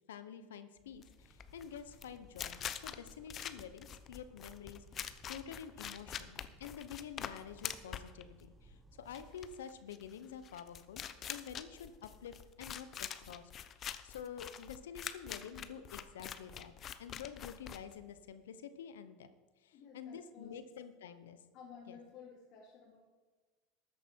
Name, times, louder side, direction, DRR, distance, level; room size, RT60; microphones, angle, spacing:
voice 1, 0.1-11.0 11.3-13.5 14.0-16.7 17.0-19.3 19.6-21.4 21.9-22.0, left 8 dB, 85° left, 12 dB, 0.9 m, -49 dB
sound 1, 0.9-18.3, left 9 dB, 40° left, 0.7 m, -45 dB
sound 2, 1.2-9.3, right 3 dB, 15° right, 1.2 m, -62 dB
voice 2, 19.7-20.6 21.5-23.0, left 6 dB, 55° left, -4 dB, 2.5 m, -54 dB
13.5 x 9.2 x 4.5 m, 1.3 s
hypercardioid pair, 100°, 0 cm